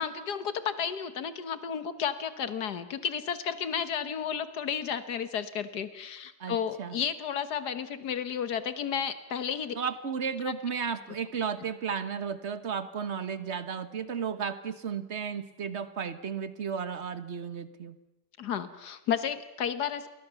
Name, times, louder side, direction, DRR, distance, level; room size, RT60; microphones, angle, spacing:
voice 1, 0.0-9.8 10.5-10.6 18.4-20.1, left 7 dB, 90° left, 11 dB, 1.9 m, -32 dB
voice 2, 6.4-7.0 9.7-17.9, right 6 dB, 45° right, 11 dB, 1.5 m, -34 dB
29.5 x 22.0 x 7.0 m, 0.96 s
omnidirectional pair, 1.7 m